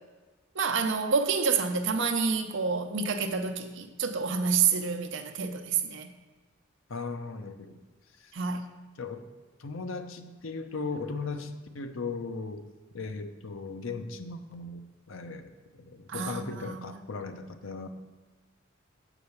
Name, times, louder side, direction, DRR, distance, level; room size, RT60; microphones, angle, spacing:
voice 1, 0.5-6.1 8.3-8.6 16.1-17.0, right 5 dB, 65° right, 0.7 m, -28 dB
voice 2, 6.9-7.8 8.2-8.3 9.0-9.2 9.6-12.6 12.9-17.9, left 4 dB, 80° left, 0.7 m, -37 dB
7.8 x 5.0 x 7.1 m
head